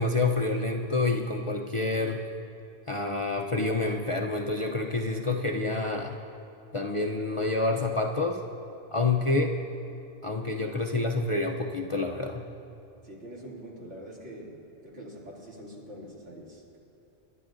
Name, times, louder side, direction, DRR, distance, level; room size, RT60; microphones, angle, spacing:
voice 1, 0.0-2.2 2.9-6.2 6.7-8.4 8.9-9.5 10.2-12.5, left 3 dB, 40° left, 1 dB, 0.5 m, -28 dB
voice 2, 13.0-14.6 14.8-16.8, equal, 80° right, -5 dB, 2.9 m, -44 dB
29.5 x 11.5 x 2.5 m, 2.8 s
omnidirectional pair, 1.2 m